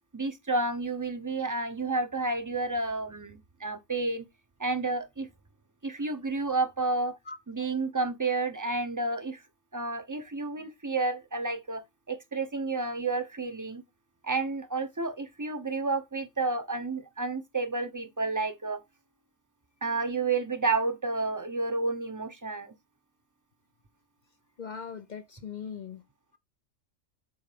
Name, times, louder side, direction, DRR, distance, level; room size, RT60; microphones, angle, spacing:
voice 1, 0.1-4.2 4.6-5.3 5.8-7.2 7.5-9.4 9.7-13.8 14.2-18.8 19.8-22.7, right 3 dB, 20° right, 0.6 m, -30 dB
voice 2, 7.3-7.7 9.0-9.1 24.6-26.0, left 6 dB, 55° left, 0.5 m, -41 dB
7.9 x 3.2 x 5.0 m
omnidirectional pair, 1.4 m